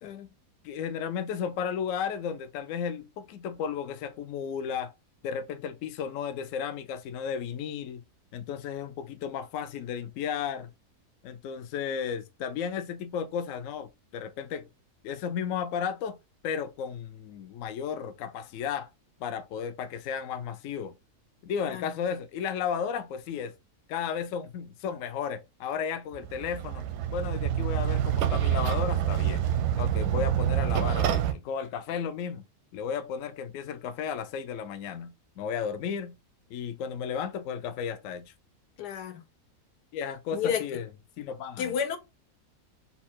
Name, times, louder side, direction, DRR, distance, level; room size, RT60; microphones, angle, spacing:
voice 1, 0.6-4.9 5.2-8.0 8.3-10.7 11.2-14.7 15.0-16.2 16.4-18.9 19.2-20.9 21.4-23.5 23.9-26.8 27.1-29.4 29.8-32.4 32.7-36.1 36.5-38.3 39.9-40.8 41.2-41.7, left 7 dB, 70° left, 0.8 m, -34 dB
sound 1, 26.1-31.3, right 10 dB, 85° right, 1.2 m, -27 dB
voice 2, 38.8-39.2 40.3-40.8 41.6-42.0, left 8 dB, 85° left, 1.4 m, -31 dB
4.2 x 2.3 x 4.3 m
omnidirectional pair, 1.7 m